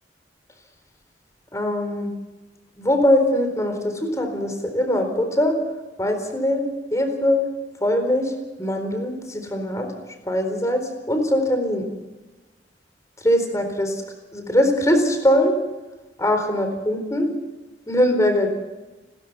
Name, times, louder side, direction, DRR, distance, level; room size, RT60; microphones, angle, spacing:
voice 1, 1.5-2.1 2.8-5.6 6.0-6.6 6.9-7.4 7.8-8.3 8.6-9.9 10.2-10.8 11.1-11.9 13.2-14.0 14.3-15.5 16.2-17.3 17.9-18.5, left 1 dB, 20° left, 6 dB, 4.1 m, -21 dB
29.5 x 13.5 x 7.0 m, 1.1 s
head